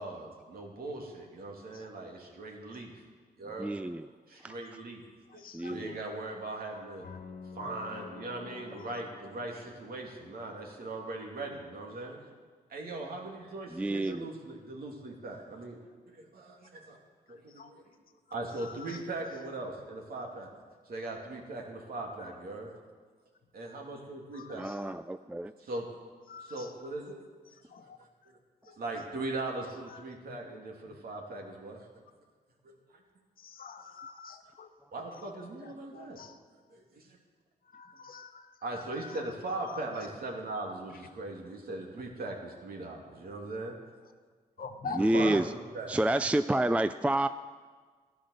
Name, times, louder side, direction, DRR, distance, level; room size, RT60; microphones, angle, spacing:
voice 1, 0.0-2.9 3.4-3.7 4.3-5.0 5.3-7.0 7.5-12.2 12.7-15.8 16.1-17.0 17.3-17.8 18.3-20.5 20.9-22.7 23.5-24.6 25.2-25.3 25.6-25.8 26.5-27.2 27.7-27.9 28.3-28.4 28.7-31.8 32.6-32.7 34.9-36.2 36.7-37.1 38.6-43.8 44.9-45.9, right 2 dB, 65° right, 1 dB, 2.7 m, -39 dB
voice 2, 3.6-4.1 4.4-4.5 5.5-6.0 13.7-14.3 24.5-25.5 45.0-45.5 45.9-47.3, right 1 dB, 10° right, 12 dB, 0.4 m, -29 dB
voice 3, 4.4-4.8 5.3-5.7 6.6-7.2 8.8-9.0 14.0-14.2 17.5-17.7 18.5-19.0 22.1-22.3 24.3-25.0 26.3-26.7 27.5-28.0 28.6-28.8 29.6-30.1 30.9-31.0 33.4-36.4 37.6-40.1 40.9-41.0 44.6-45.4 46.2-46.3, left 5 dB, 60° left, 8 dB, 1.0 m, -47 dB
sound 1, 7.0-11.2, left 4 dB, 75° left, 1.6 m, -49 dB
14.0 x 10.5 x 6.6 m, 1.5 s
cardioid pair, 80°, 17 cm